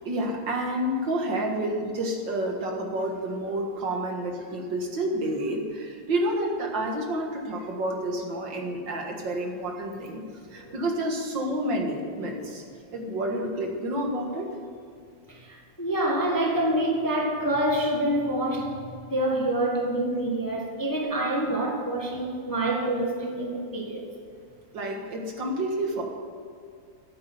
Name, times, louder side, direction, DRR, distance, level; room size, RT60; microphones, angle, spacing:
voice 1, 0.1-10.2 10.5-12.6 12.9-14.5 24.7-26.0, right 1 dB, 65° right, 1 dB, 2.3 m, -29 dB
voice 2, 15.3-18.8 19.0-24.0, right 1 dB, 10° left, -1 dB, 1.2 m, -26 dB
13.0 x 8.7 x 7.9 m, 2.3 s
omnidirectional pair, 2.2 m